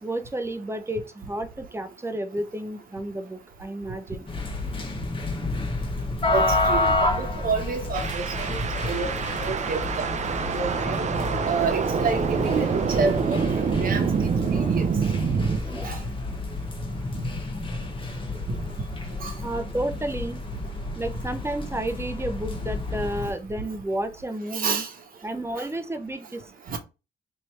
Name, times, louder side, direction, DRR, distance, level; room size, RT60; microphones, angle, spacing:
voice 1, 0.0-4.3 14.0-14.1 15.5-15.9 19.4-20.4 21.0-24.8 25.2-26.5, right 1 dB, 15° right, 0.8 m, -32 dB
sound 1, 4.3-23.3, left 2 dB, 35° left, 1.1 m, -30 dB
voice 2, 6.3-10.0 10.5-11.0 11.5-14.1 14.5-14.8 15.8-16.0 17.1-17.2 19.2-19.3 24.5-24.9 25.6-25.7 26.7-26.8, right 4 dB, 60° right, 1.1 m, -29 dB
sound 2, 7.9-15.6, right 6 dB, 45° right, 0.6 m, -26 dB
3.1 x 2.7 x 4.3 m
supercardioid pair, 55°, 16 cm